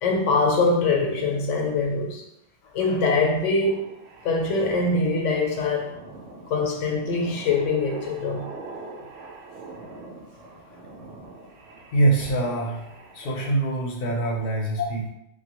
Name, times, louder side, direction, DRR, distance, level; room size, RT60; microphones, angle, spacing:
voice 1, 0.0-2.2 2.7-3.9 4.2-6.0 6.5-8.5, left 3 dB, 85° left, 1 dB, 1.0 m, -23 dB
sound 1, 3.6-13.5, right 3 dB, 70° right, 0.9 m, -43 dB
voice 2, 11.9-15.1, right 2 dB, 55° left, -1 dB, 0.8 m, -24 dB
3.1 x 2.2 x 2.9 m, 0.80 s
omnidirectional pair, 1.2 m